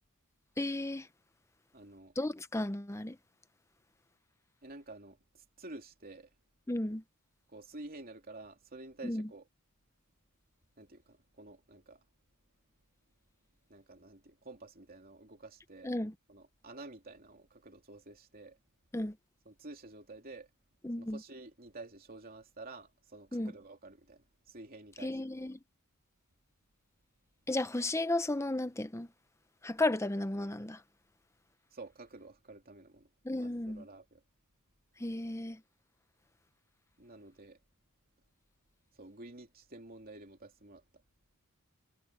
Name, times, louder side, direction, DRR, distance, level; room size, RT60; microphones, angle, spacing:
voice 1, 0.6-1.1 2.2-3.2 6.7-7.0 9.0-9.3 15.8-16.1 18.9-19.2 20.8-21.2 23.3-23.5 25.0-25.6 27.5-29.1 29.6-30.8 33.2-33.8 35.0-35.6, left 2 dB, 15° left, 0.7 m, -34 dB
voice 2, 1.7-2.1 4.6-6.3 7.5-9.5 10.8-12.0 13.7-15.9 16.3-18.6 19.4-20.5 21.0-25.5 31.7-33.1 33.4-34.2 37.0-37.6 39.0-40.8, right 2 dB, 40° right, 3.0 m, -50 dB
head